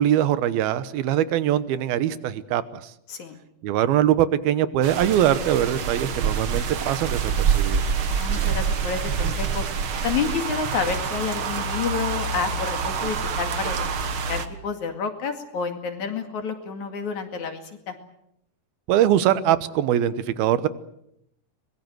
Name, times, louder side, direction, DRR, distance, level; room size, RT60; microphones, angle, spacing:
voice 1, 0.0-2.9 3.6-7.8 18.9-20.7, right 11 dB, 80° right, 14 dB, 2.9 m, -22 dB
sound 1, 4.8-14.5, right 6 dB, 65° right, 1.3 m, -26 dB
voice 2, 8.1-9.6 10.0-13.9 14.3-17.9, left 6 dB, 55° left, 6 dB, 3.3 m, -29 dB
24.5 x 21.5 x 7.9 m, 0.78 s
omnidirectional pair, 4.4 m